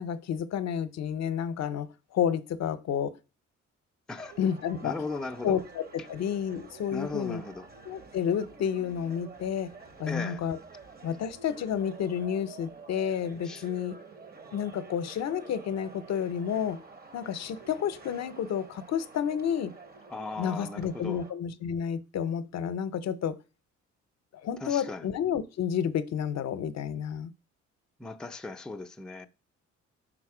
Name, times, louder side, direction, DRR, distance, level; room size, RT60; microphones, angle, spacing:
voice 1, 0.0-3.2 4.4-5.0 5.4-5.8 6.1-7.4 7.9-9.7 10.0-10.6 11.0-14.0 14.5-16.8 17.1-19.7 20.4-23.4 24.4-27.3, left 8 dB, 60° left, 0.6 m, -30 dB
sound 1, 4.1-21.3, right 4 dB, 30° right, 0.9 m, -49 dB
voice 2, 4.8-5.6 6.9-7.7 10.1-10.4 13.4-13.6 20.1-21.2 24.6-25.1 28.0-29.3, left 3 dB, ahead, 0.4 m, -37 dB
4.9 x 4.1 x 4.8 m
cardioid pair, 90°, 30 cm